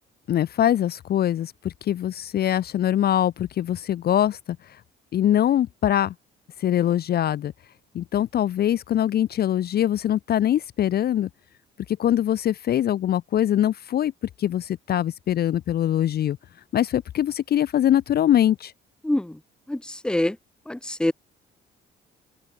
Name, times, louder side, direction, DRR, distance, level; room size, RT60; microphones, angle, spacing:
voice 1, 0.3-4.6 5.1-6.1 6.6-7.5 7.9-11.3 12.0-14.1 14.4-16.4 16.7-18.7, left 11 dB, 55° left, 0.5 m, -23 dB
voice 2, 19.0-19.4 19.7-20.4 20.7-21.1, left 1 dB, 5° left, 0.7 m, -25 dB
open air
cardioid pair, 90°, 20 cm